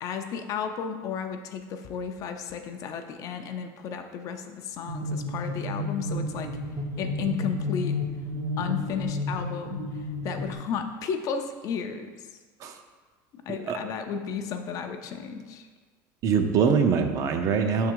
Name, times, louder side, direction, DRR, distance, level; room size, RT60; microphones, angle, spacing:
voice 1, 0.0-6.5 7.0-8.0 8.6-12.3 13.3-15.7, left 7 dB, 40° left, 6 dB, 0.5 m, -33 dB
sound 1, 4.9-10.5, left 2 dB, 75° right, 1.0 m, -31 dB
voice 2, 16.2-17.9, right 6 dB, 40° right, 6 dB, 0.5 m, -23 dB
6.0 x 3.7 x 4.5 m, 1.4 s
cardioid pair, 150°, 9 cm